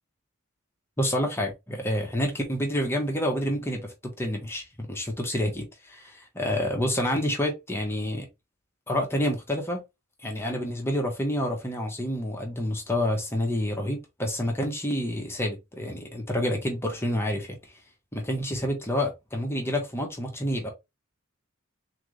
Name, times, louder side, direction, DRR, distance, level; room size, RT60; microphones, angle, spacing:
voice 1, 1.0-8.3 8.9-9.8 10.2-17.7 18.1-20.7, equal, 10° left, 1.1 m, -28 dB
3.8 x 3.5 x 3.2 m
head